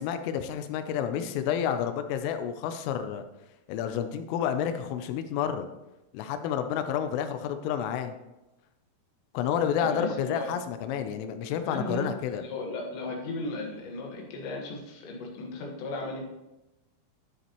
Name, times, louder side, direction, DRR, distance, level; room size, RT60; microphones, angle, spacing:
voice 1, 0.0-3.3 3.7-5.7 6.1-8.2 9.3-12.4, left 8 dB, 85° left, 9 dB, 3.2 m, -30 dB
voice 2, 9.8-10.5 11.7-12.1 12.4-16.2, left 2 dB, 65° left, 0 dB, 3.5 m, -35 dB
12.5 x 8.2 x 3.0 m, 0.98 s
omnidirectional pair, 5.9 m